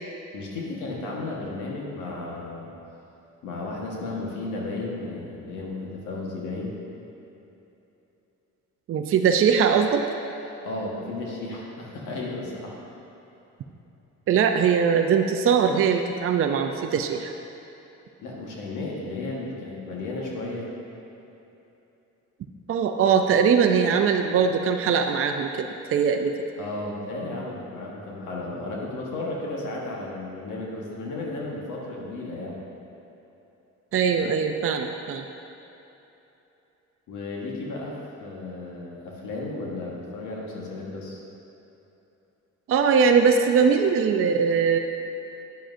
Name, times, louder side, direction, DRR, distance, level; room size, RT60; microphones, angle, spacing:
voice 1, 0.3-2.7 3.4-6.7 10.4-12.8 18.2-20.7 26.6-32.6 37.1-37.9 38.2-41.2, left 2 dB, 90° left, -3 dB, 1.4 m, -34 dB
voice 2, 8.9-10.0 14.3-17.3 22.7-26.3 33.9-35.2 42.7-44.8, right 6 dB, 45° right, 4 dB, 0.5 m, -21 dB
10.0 x 7.4 x 2.6 m, 3.0 s
cardioid pair, 90°, 30 cm